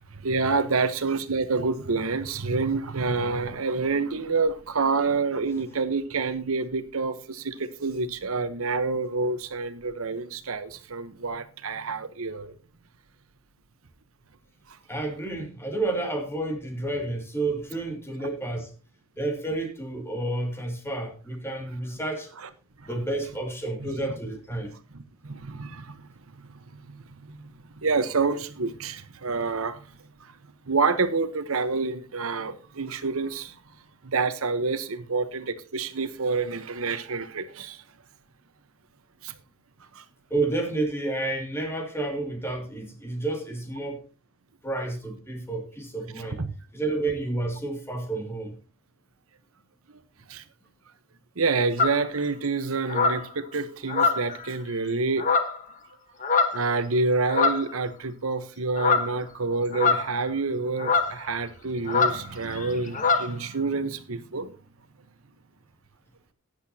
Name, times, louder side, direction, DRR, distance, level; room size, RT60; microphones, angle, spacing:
voice 1, 0.1-12.5 14.7-14.8 18.2-18.3 22.4-22.5 22.8-22.9 23.8-24.1 24.9-29.9 30.2-30.4 30.6-33.6 34.0-37.8 39.2-39.3 39.9-40.0 46.2-46.5 49.9-50.0 50.3-50.4 51.4-55.3 56.5-64.5, right 4 dB, 80° right, 1.1 m, -28 dB
voice 2, 14.9-18.7 19.2-22.3 22.8-24.7 40.3-44.0 44.6-46.4 46.7-48.5, right 2 dB, 10° left, 2.4 m, -30 dB
sound 1, 51.8-52.0 52.9-53.3 53.9-54.5 55.2-55.6 56.2-56.7 57.3-57.7 58.8-59.1 59.7-60.3 60.8-61.1 61.9-62.2 62.5-62.7 62.9-63.3, left 4 dB, 35° left, 1.2 m, -23 dB
15.0 x 10.5 x 2.8 m
head